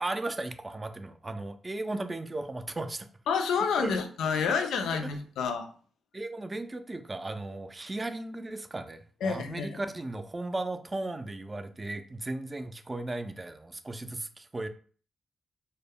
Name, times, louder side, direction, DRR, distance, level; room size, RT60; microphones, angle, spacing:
voice 1, 0.0-3.1 3.8-3.9 4.5-4.9 6.1-14.7, right 2 dB, 25° right, 8 dB, 0.3 m, -36 dB
voice 2, 3.3-5.7 9.2-9.8, left 6 dB, 90° left, 6 dB, 0.4 m, -29 dB
2.1 x 2.0 x 3.4 m, 0.43 s
cardioid pair, 75°, 0 cm